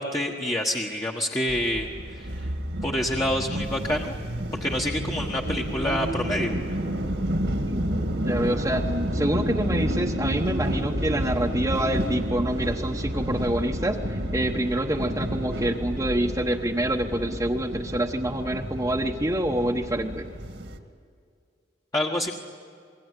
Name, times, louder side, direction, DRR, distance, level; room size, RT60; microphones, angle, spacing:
voice 1, 0.0-1.9 2.2-2.4 2.8-4.1 4.6-6.5 21.9-22.3, left 1 dB, 20° left, 0 dB, 1.4 m, -27 dB
sound 1, 1.5-20.8, equal, 70° right, 2.1 m, -30 dB
voice 2, 7.6-8.9 9.1-20.3, right 1 dB, 15° right, -1 dB, 1.1 m, -27 dB
26.5 x 22.0 x 9.8 m, 2.2 s
head